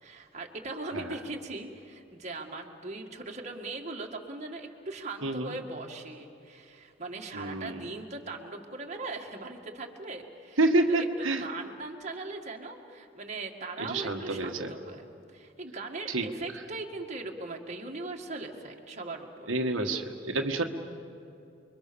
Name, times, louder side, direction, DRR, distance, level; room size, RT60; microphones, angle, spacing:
voice 1, 0.0-19.5, right 3 dB, 35° right, 1 dB, 2.1 m, -40 dB
voice 2, 5.2-5.6 7.3-7.8 10.6-11.4 13.8-14.7 16.1-16.3 19.5-20.6, right 2 dB, 85° right, 3 dB, 1.6 m, -28 dB
29.5 x 23.0 x 7.0 m, 2.7 s
head